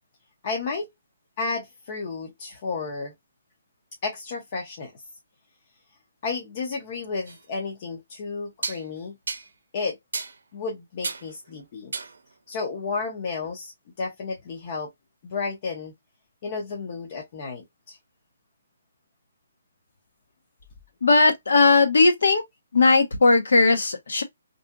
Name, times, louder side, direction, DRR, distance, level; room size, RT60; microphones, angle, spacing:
voice 1, 0.4-0.9 1.4-3.1 4.0-4.9 6.2-9.2 9.7-10.0 10.5-11.9 12.5-13.7 14.0-14.9 15.2-15.9 16.4-18.0, left 4 dB, 25° left, 0.5 m, -32 dB
sound 1, 7.3-7.4 8.6-8.8 9.3-9.5 10.1-10.4 11.0-11.3 11.9-12.2, right 4 dB, 85° right, 0.5 m, -32 dB
voice 2, 21.0-22.4 22.7-24.2, left 3 dB, 85° left, 0.8 m, -18 dB
2.6 x 2.6 x 2.2 m
hypercardioid pair, 180°, 0 cm